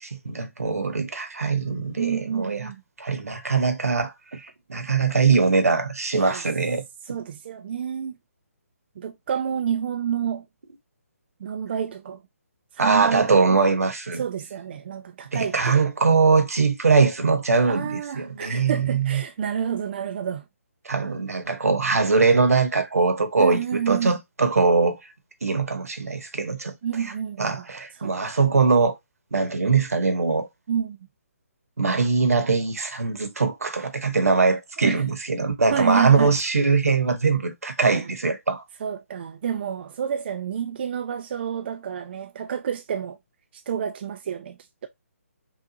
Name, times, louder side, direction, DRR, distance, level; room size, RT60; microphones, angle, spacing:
voice 1, 0.0-2.6 3.0-6.8 12.8-14.2 15.3-19.2 20.8-25.0 25.4-26.7 27.4-28.9 29.3-30.5 31.8-38.6, right 4 dB, 75° right, 1.0 m, -22 dB
voice 2, 2.0-2.8 6.1-6.4 7.0-8.2 9.0-10.5 11.4-12.2 12.7-13.6 14.1-15.8 17.7-20.4 23.4-24.1 26.8-27.6 27.9-28.4 30.7-31.0 34.8-35.0 35.7-36.3 37.8-38.1 38.8-43.2 43.5-44.6, right 8 dB, 45° right, 0.4 m, -29 dB
5.8 x 2.4 x 2.7 m
figure-of-eight pair, 145°, 8 cm